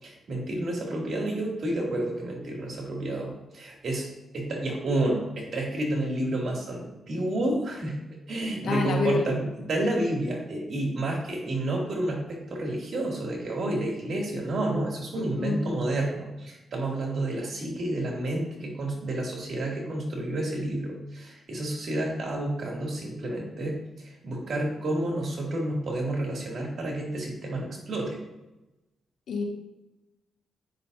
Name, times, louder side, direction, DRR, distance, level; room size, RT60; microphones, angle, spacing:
voice 1, 0.0-4.1 4.3-8.0 8.3-28.2, right 1 dB, 60° right, -2 dB, 2.4 m, -30 dB
voice 2, 8.6-9.3 15.4-15.6 29.3-29.4, left 3 dB, 75° left, 1 dB, 1.4 m, -27 dB
9.5 x 5.9 x 2.6 m, 1.0 s
cardioid pair, 75°, 0 cm